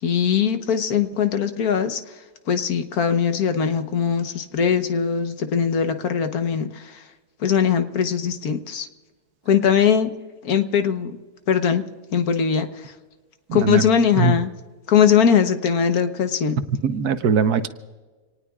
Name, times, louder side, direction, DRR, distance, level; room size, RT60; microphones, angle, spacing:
voice 1, 0.0-7.1 7.4-8.9 9.5-10.1 10.4-11.2 11.5-11.8 12.1-12.9 13.5-14.5 14.9-16.6, left 7 dB, 75° left, 8 dB, 1.5 m, -21 dB
voice 2, 13.5-13.8 14.2-14.3 16.8-17.7, right 5 dB, 80° right, 10 dB, 1.4 m, -20 dB
27.0 x 19.0 x 2.4 m, 1.3 s
omnidirectional pair, 1.6 m